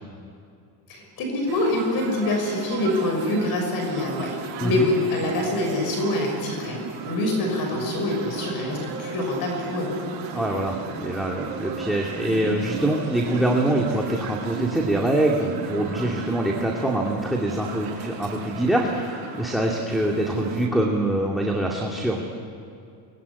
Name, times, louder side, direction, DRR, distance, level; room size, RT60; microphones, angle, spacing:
voice 1, 0.9-9.9, left 1 dB, 55° left, 2 dB, 6.4 m, -25 dB
sound 1, 1.5-20.7, right 5 dB, 65° right, 7.0 m, -35 dB
voice 2, 10.3-22.2, right 1 dB, ahead, -2 dB, 2.3 m, -24 dB
24.5 x 22.0 x 9.8 m, 2.4 s
cardioid pair, 125°, 42 cm